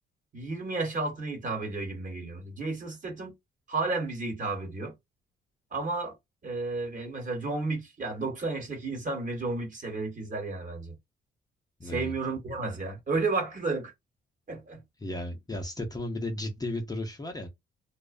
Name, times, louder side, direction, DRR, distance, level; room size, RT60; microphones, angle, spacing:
voice 1, 0.3-3.3 3.7-4.9 5.7-6.1 6.4-10.9 11.8-13.9 14.5-14.8, right 3 dB, 40° right, 1.1 m, -32 dB
voice 2, 11.8-12.1 15.0-17.5, left 1 dB, 20° left, 0.5 m, -34 dB
2.4 x 2.1 x 2.4 m
cardioid pair, 90°, 20 cm